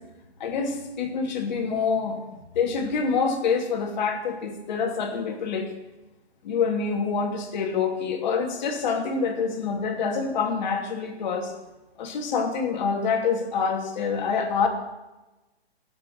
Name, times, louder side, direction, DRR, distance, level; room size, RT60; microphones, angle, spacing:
voice 1, 0.4-2.2 2.5-5.7 6.4-11.5 12.0-14.7, left 5 dB, 45° left, 2 dB, 2.8 m, -26 dB
16.0 x 7.9 x 9.2 m, 1.1 s
hypercardioid pair, 160°, 32 cm